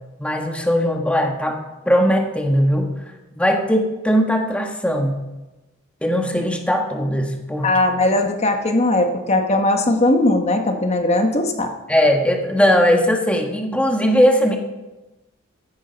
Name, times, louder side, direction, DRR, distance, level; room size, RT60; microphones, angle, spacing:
voice 1, 0.2-1.6 1.8-2.9 3.3-5.2 6.0-7.7 11.9-14.6, equal, 5° left, 3 dB, 1.5 m, -19 dB
voice 2, 7.6-11.7, left 2 dB, 30° left, 5 dB, 1.3 m, -19 dB
15.0 x 10.0 x 5.3 m, 1.1 s
head